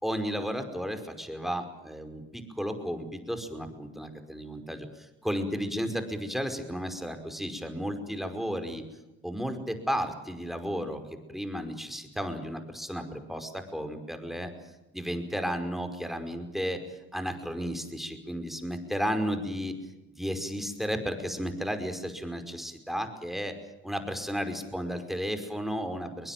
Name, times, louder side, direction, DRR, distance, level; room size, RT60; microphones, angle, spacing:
voice 1, 0.0-8.8 9.2-11.0 11.3-14.5 14.9-16.8 17.1-19.7 20.1-23.5 23.8-26.3, equal, ahead, 7 dB, 5.2 m, -33 dB
22.5 x 21.0 x 9.2 m, 0.98 s
supercardioid pair, 60°, 32 cm